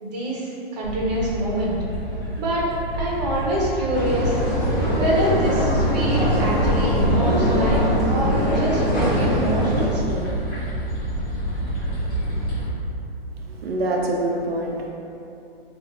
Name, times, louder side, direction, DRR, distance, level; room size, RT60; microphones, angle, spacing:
voice 1, 0.0-1.8 2.4-2.7 3.0-4.4 5.0-10.3, right 1 dB, 45° right, -5 dB, 0.9 m, -25 dB
sound 1, 0.8-12.7, right 1 dB, 15° left, 0.7 m, -27 dB
sound 2, 3.9-9.9, equal, 45° left, 1.4 m, -22 dB
voice 2, 13.6-14.9, right 1 dB, 80° right, -1 dB, 0.6 m, -25 dB
4.1 x 2.5 x 2.6 m, 2.8 s
hypercardioid pair, 160°, 30 cm